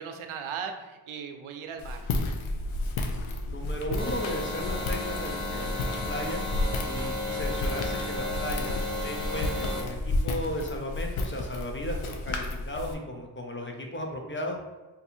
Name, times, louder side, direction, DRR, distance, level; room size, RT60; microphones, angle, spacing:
voice 1, 0.0-2.1, right 6 dB, 80° right, 5 dB, 0.6 m, -37 dB
Walk footsteps, 1.8-12.9, left 2 dB, 80° left, 0.6 m, -32 dB
voice 2, 3.5-6.5 6.8-8.8 9.0-14.6, left 1 dB, 25° left, 1 dB, 0.4 m, -35 dB
sound 1, 4.0-9.8, left 1 dB, 10° left, 1.0 m, -34 dB
2.6 x 2.6 x 4.1 m, 1.2 s
wide cardioid pair, 120°, 49 cm